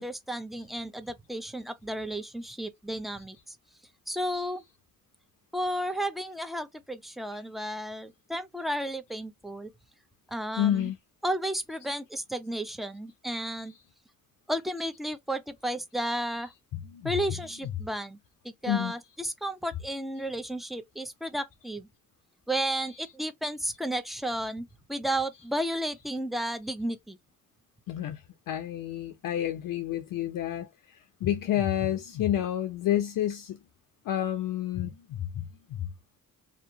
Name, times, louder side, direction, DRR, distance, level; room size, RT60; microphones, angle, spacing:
voice 1, 0.0-3.6 4.1-4.6 5.5-9.7 10.3-10.9 11.2-13.7 14.5-16.5 17.0-18.2 18.4-21.9 22.5-27.2, right 1 dB, ahead, 0.6 m, -33 dB
voice 2, 10.6-10.9 16.8-17.1 18.7-18.9 22.8-22.9 27.9-33.6 34.1-35.9, left 11 dB, 65° left, 0.6 m, -30 dB
2.8 x 2.1 x 2.6 m
supercardioid pair, 65°, 36 cm